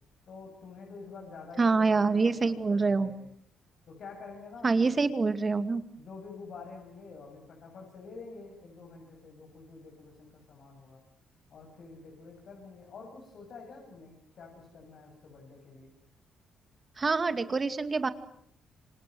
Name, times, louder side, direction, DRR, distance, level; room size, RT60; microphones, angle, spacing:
voice 1, 0.3-3.3 3.9-4.9 6.0-11.0 11.5-15.9, left 4 dB, 60° left, 0 dB, 8.0 m, -48 dB
voice 2, 1.6-3.1 4.6-5.8 17.0-18.1, right 4 dB, 30° right, 10 dB, 2.4 m, -26 dB
27.5 x 25.5 x 7.8 m, 0.70 s
cardioid pair, 90°, 0 cm